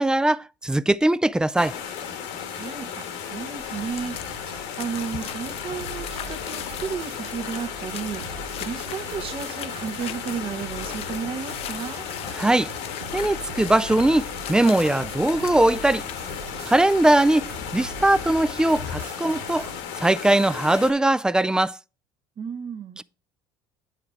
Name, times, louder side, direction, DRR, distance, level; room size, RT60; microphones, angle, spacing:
voice 1, 0.0-1.8 12.3-12.7 13.1-16.0 16.7-19.7 20.0-21.8 23.0-23.1, right 1 dB, 5° right, 0.3 m, -20 dB
sound 1, 1.6-20.9, left 8 dB, 75° left, 1.3 m, -35 dB
voice 2, 2.5-12.1 22.4-23.0, right 6 dB, 50° right, 1.2 m, -33 dB
sound 2, 3.7-19.0, left 11 dB, 55° left, 0.6 m, -40 dB
sound 3, 3.7-19.8, right 5 dB, 90° right, 0.8 m, -42 dB
8.3 x 4.9 x 4.5 m
supercardioid pair, 85°, 12 cm